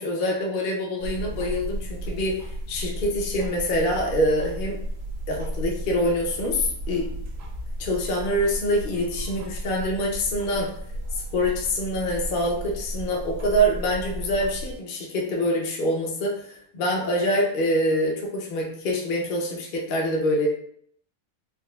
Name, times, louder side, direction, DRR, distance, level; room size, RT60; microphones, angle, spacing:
voice 1, 0.0-4.8 5.3-7.1 7.8-10.7 11.3-20.5, equal, 55° left, -1 dB, 0.6 m, -25 dB
sound 1, 1.0-14.8, right 1 dB, 70° right, 1.0 m, -34 dB
4.0 x 2.3 x 2.2 m, 0.65 s
omnidirectional pair, 1.5 m